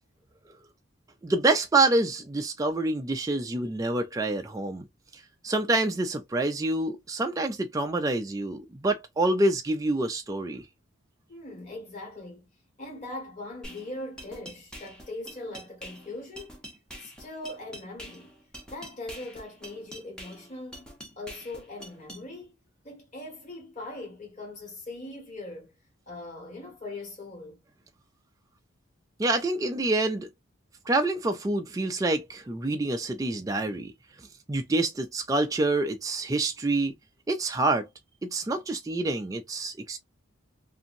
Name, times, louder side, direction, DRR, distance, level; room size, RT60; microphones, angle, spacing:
voice 1, 1.2-4.9 5.4-10.6 29.2-30.3 30.9-33.9 34.5-36.9 37.3-37.9 38.3-40.0, right 2 dB, 15° right, 0.3 m, -27 dB
voice 2, 11.3-12.5 12.8-16.5 17.0-18.3 18.7-20.9 21.2-22.5 22.8-25.7 26.1-27.6, left 2 dB, 35° left, 1.5 m, -40 dB
sound 1, 13.6-22.2, equal, 5° left, 0.8 m, -45 dB
2.8 x 2.6 x 2.5 m
head